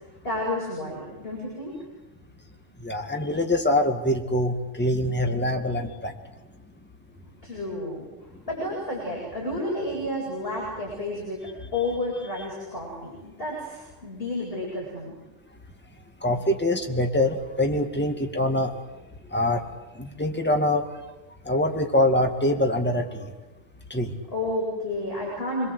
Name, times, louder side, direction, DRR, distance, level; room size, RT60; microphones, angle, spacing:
voice 1, 0.2-1.7 7.4-8.1 8.4-11.4 11.7-15.2 24.3-25.7, left 1 dB, 45° left, -4 dB, 8.4 m, -31 dB
voice 2, 2.8-6.1 16.2-18.7 19.3-19.6 20.0-20.9 21.4-23.3 23.9-24.1, left 1 dB, 10° left, 3 dB, 2.2 m, -24 dB
29.0 x 22.0 x 8.1 m, 1.1 s
omnidirectional pair, 1.3 m